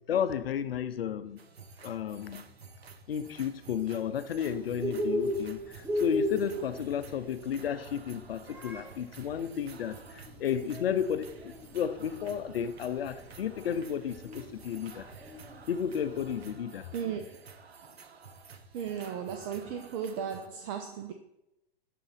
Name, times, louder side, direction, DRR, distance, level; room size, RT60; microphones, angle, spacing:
voice 1, 0.0-1.4 1.8-2.5 3.1-15.1 15.7-16.9, left 8 dB, 70° left, 12 dB, 0.7 m, -33 dB
sound 1, 1.4-20.5, right 5 dB, 85° right, 0.8 m, -52 dB
Bird, 4.3-16.4, equal, 5° right, 0.9 m, -37 dB
voice 2, 16.9-17.4 18.7-21.1, right 7 dB, 30° right, 6 dB, 0.6 m, -35 dB
6.6 x 3.9 x 5.7 m, 0.87 s
hypercardioid pair, 115°, 31 cm